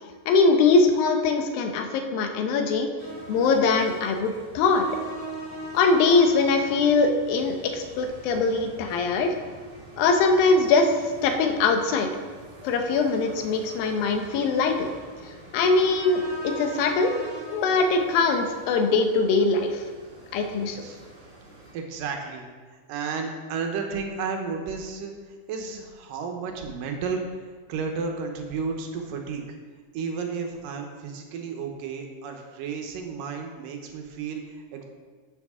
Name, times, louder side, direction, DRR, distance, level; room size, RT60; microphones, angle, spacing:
voice 1, 0.3-2.9 3.3-4.9 5.7-9.3 10.0-10.9 11.2-12.1 12.6-14.9 15.5-17.2 17.5-19.8 20.3-20.8, left 4 dB, 85° left, 5 dB, 2.7 m, -22 dB
sound 1, 3.0-21.7, right 3 dB, 35° right, 2.0 m, -42 dB
voice 2, 21.7-25.1 25.5-27.2 27.7-29.4 29.9-34.8, right 5 dB, 75° right, 3 dB, 2.5 m, -32 dB
12.0 x 8.1 x 3.7 m, 1.5 s
omnidirectional pair, 4.1 m